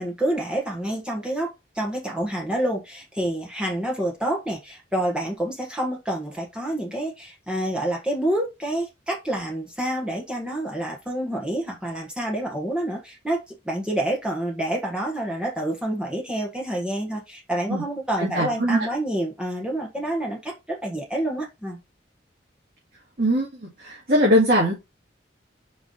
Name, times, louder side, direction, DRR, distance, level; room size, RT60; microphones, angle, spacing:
voice 1, 0.0-21.8, right 1 dB, 5° right, 1.4 m, -28 dB
voice 2, 18.2-18.8 23.2-23.5 23.8-24.7, equal, 55° right, 2.3 m, -20 dB
5.5 x 4.7 x 3.9 m
head